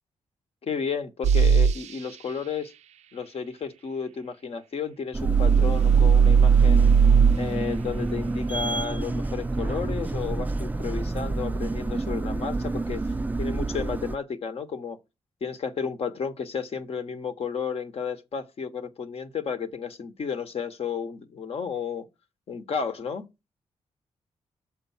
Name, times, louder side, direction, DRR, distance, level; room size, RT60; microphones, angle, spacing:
voice 1, 0.6-2.7 3.1-6.9 7.3-13.0 13.4-15.0 15.4-22.1 22.5-23.3, left 6 dB, 60° left, 1.1 m, -32 dB
sound 1, 1.2-1.8 5.2-7.4, right 6 dB, 80° right, 0.4 m, -17 dB
sound 2, 5.1-14.2, right 2 dB, 15° right, 0.3 m, -29 dB
6.7 x 4.6 x 5.5 m
cardioid pair, 65°, 11 cm